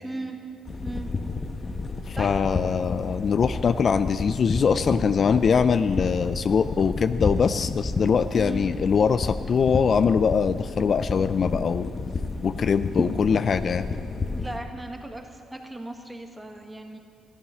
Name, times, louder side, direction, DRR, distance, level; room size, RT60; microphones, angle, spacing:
voice 1, 0.0-0.4 0.8-1.1 2.1-2.3 8.4-8.6 14.3-17.0, right 1 dB, 10° right, 4 dB, 1.4 m, -37 dB
sound 1, 0.7-14.6, left 3 dB, 30° left, 1.0 m, -31 dB
voice 2, 2.1-11.9 12.4-13.8, left 6 dB, 50° left, 12 dB, 0.3 m, -22 dB
14.0 x 11.0 x 5.7 m, 2.3 s
cardioid pair, 90°, 0 cm